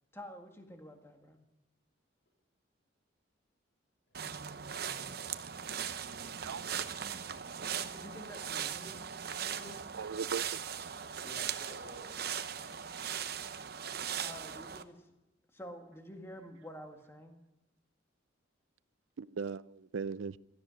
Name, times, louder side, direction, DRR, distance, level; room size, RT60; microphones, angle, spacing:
voice 1, 0.1-1.4 7.9-9.0 9.6-9.8 14.2-15.1 15.5-17.4, equal, 10° left, 1.8 m, -49 dB
sound 1, 4.1-14.8, right 8 dB, 50° right, 0.8 m, -39 dB
voice 2, 4.3-4.9 11.2-12.7, equal, 65° left, 3.9 m, -53 dB
voice 3, 9.9-10.6 19.2-20.4, right 5 dB, 85° right, 0.5 m, -38 dB
17.0 x 13.0 x 6.3 m
head